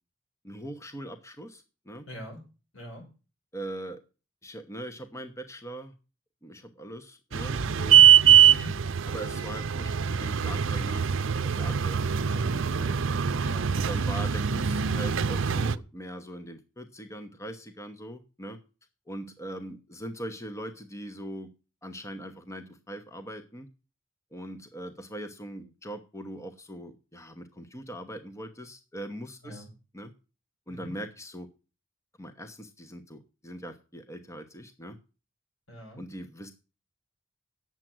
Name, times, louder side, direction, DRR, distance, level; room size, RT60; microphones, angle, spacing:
voice 1, 0.4-2.1 3.5-4.0 4.4-5.9 6.4-8.6 9.1-11.1 11.4-12.0 12.3-13.0 13.7-18.6 19.1-21.5 21.8-23.7 24.3-29.7 29.9-30.1 30.7-31.5 32.2-35.0 36.0-36.5, right 1 dB, 15° left, 8 dB, 1.0 m, -41 dB
voice 2, 2.1-2.4 2.7-3.1 8.5-8.8 13.4-13.7 29.4-29.7 30.7-30.9 35.7-36.0, equal, 80° left, 1 dB, 5.7 m, -42 dB
sound 1, 7.3-15.7, right 8 dB, 75° right, 0.6 m, -22 dB
9.0 x 7.6 x 7.6 m, 0.33 s
head